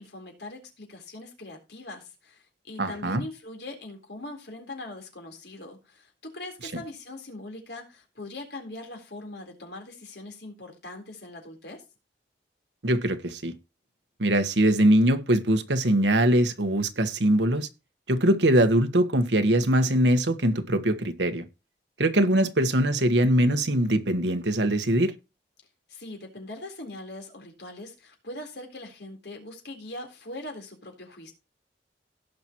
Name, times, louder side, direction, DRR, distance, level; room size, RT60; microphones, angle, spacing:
voice 1, 0.0-11.8 25.9-31.3, left 2 dB, 70° left, 4.0 m, -41 dB
voice 2, 2.8-3.2 12.8-13.5 14.2-17.7 18.1-21.4 22.0-25.1, right 1 dB, 80° right, 1.4 m, -22 dB
17.5 x 5.9 x 3.0 m
head